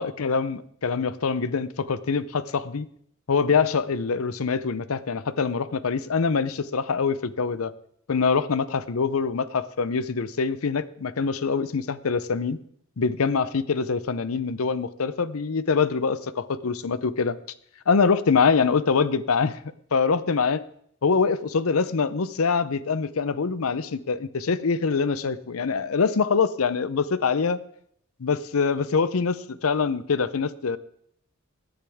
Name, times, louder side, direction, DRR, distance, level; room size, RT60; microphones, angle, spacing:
voice 1, 0.0-2.9 3.3-7.7 8.1-12.6 13.0-17.4 17.9-19.6 19.9-20.6 21.0-27.6 28.2-30.8, left 5 dB, 75° left, 16 dB, 0.6 m, -24 dB
17.5 x 10.5 x 3.5 m, 0.66 s
head